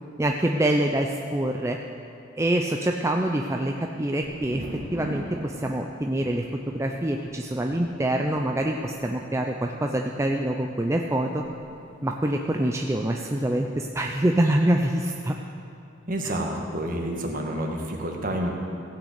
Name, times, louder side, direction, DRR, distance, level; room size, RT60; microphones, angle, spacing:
voice 1, 0.2-1.8 2.4-4.6 4.9-11.4 12.0-15.3 16.2-16.3, right 1 dB, 15° right, 2 dB, 0.5 m, -25 dB
Thunder, 4.2-13.9 14.1-14.9, equal, 70° right, 2.7 m, -44 dB
voice 2, 16.1-18.5, right 1 dB, 45° right, 1 dB, 1.6 m, -29 dB
16.0 x 6.4 x 8.2 m, 2.6 s
head